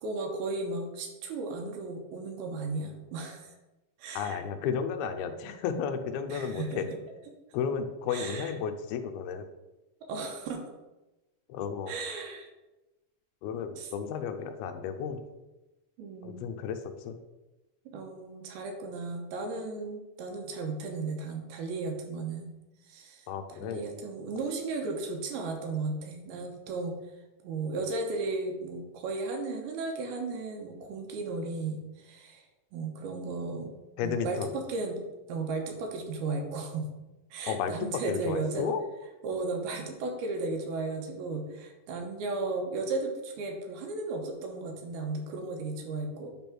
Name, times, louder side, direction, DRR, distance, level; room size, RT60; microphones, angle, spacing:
voice 1, 0.0-3.5 4.0-4.4 6.3-6.9 8.1-8.5 10.1-10.6 11.9-12.5 13.8-13.9 16.0-16.5 17.9-22.5 22.9-23.3 23.6-27.0 27.4-32.4 32.7-33.7 34.0-36.9 37.3-38.7 39.2-46.3, right 3 dB, 80° right, 3 dB, 3.0 m, -35 dB
voice 2, 4.1-6.9 7.5-9.5 11.5-11.9 13.4-15.3 16.2-17.2 23.3-23.9 34.0-34.5 37.5-38.8, left 7 dB, 80° left, 8 dB, 2.6 m, -33 dB
9.2 x 3.6 x 6.0 m, 1.0 s
omnidirectional pair, 4.5 m